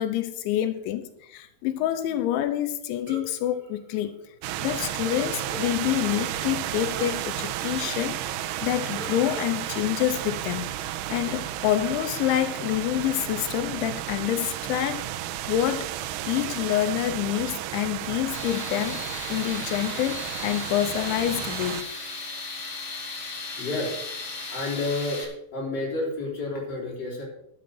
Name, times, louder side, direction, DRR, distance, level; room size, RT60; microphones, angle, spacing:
voice 1, 0.0-4.4 4.6-15.1 15.5-19.0 19.3-21.8, left 12 dB, 85° left, 9 dB, 3.1 m, -27 dB
sound 1, 3.1-4.7 5.1-8.5 8.9-10.9, right 1 dB, 35° right, 2.6 m, -44 dB
sound 2, 4.4-21.8, right 12 dB, 85° right, 2.4 m, -33 dB
Tools, 18.3-25.2, left 3 dB, 40° left, 2.6 m, -36 dB
voice 2, 23.3-24.0 24.5-25.2 25.5-27.2, left 2 dB, 25° left, -4 dB, 4.1 m, -30 dB
12.0 x 7.6 x 6.4 m, 0.79 s
omnidirectional pair, 5.2 m